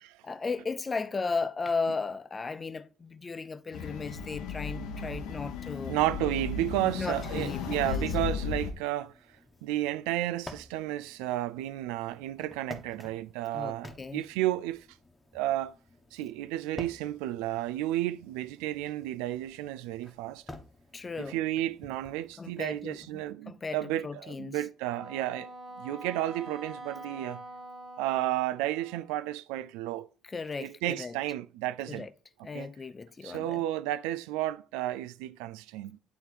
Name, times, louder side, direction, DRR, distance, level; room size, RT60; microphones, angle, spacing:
voice 1, 0.2-6.0 7.0-8.1 13.5-14.3 20.9-21.4 22.4-24.6 30.2-31.2 31.9-32.1 32.4-33.6, left 4 dB, 35° left, 0.6 m, -35 dB
sound 1, 3.7-8.7, left 6 dB, 80° left, 0.9 m, -35 dB
voice 2, 5.9-9.1 9.6-14.9 15.3-15.7 16.1-20.4 21.2-25.5 25.8-27.4 28.0-30.1 30.6-32.1 32.5-32.7 33.2-36.0, right 14 dB, 85° right, 0.3 m, -32 dB
sound 2, 6.8-23.3, left 2 dB, 20° left, 1.2 m, -52 dB
Wind instrument woodwind instrument, 24.8-29.3, right 2 dB, 45° right, 1.4 m, -45 dB
8.5 x 3.4 x 4.6 m
hypercardioid pair, 55°, 0 cm